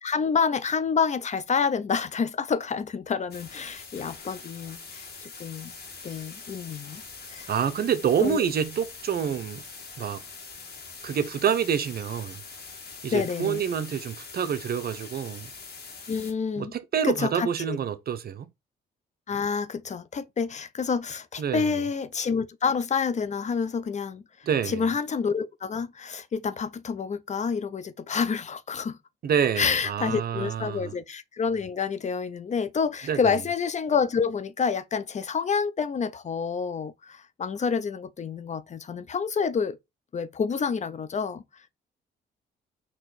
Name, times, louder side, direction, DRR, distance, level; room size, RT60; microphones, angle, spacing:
voice 1, 0.0-5.7 6.0-7.5 8.2-8.4 13.1-13.6 16.1-16.7 17.0-17.8 19.3-24.2 24.7-29.0 29.6-39.8 40.1-41.4, left 6 dB, 35° left, 0.5 m, -28 dB
sound 1, 3.3-16.3, left 4 dB, 55° left, 1.7 m, -43 dB
voice 2, 7.5-9.6 10.0-10.2 11.0-12.4 13.0-15.5 16.6-18.5 21.4-21.8 24.5-24.8 29.2-30.9 33.1-33.4, right 8 dB, 50° right, 0.7 m, -27 dB
4.4 x 2.9 x 4.0 m
cardioid pair, 90°, 20 cm